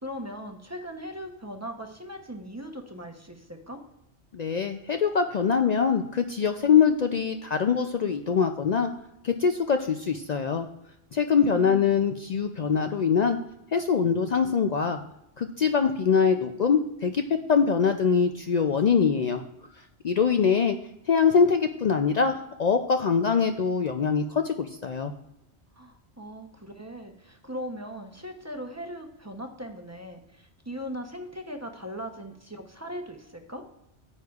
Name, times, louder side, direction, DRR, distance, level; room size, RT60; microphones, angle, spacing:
voice 1, 0.0-3.8 11.4-12.0 25.8-33.6, equal, 15° right, 4 dB, 0.7 m, -39 dB
voice 2, 4.3-8.9 9.2-10.7 11.1-13.4 13.7-15.0 15.4-17.2 17.5-19.4 20.0-20.8 21.1-25.1, left 6 dB, 60° left, 6 dB, 0.4 m, -23 dB
9.7 x 9.2 x 2.4 m, 0.87 s
omnidirectional pair, 1.2 m